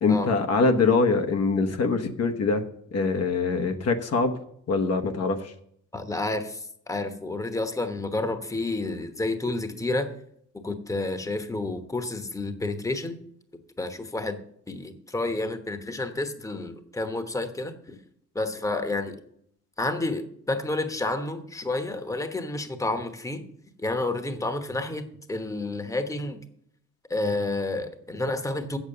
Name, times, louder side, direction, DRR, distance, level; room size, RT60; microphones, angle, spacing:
voice 1, 0.0-2.6 2.9-4.3 4.7-5.5, left 4 dB, 55° left, 6 dB, 1.1 m, -23 dB
voice 2, 5.9-10.1 10.6-13.2 13.8-14.4 14.7-18.0 18.3-19.1 19.8-23.4 23.8-26.4 27.1-28.8, left 2 dB, 10° left, 8 dB, 1.1 m, -30 dB
8.1 x 7.2 x 6.7 m, 0.69 s
cardioid pair, 90°, 30 cm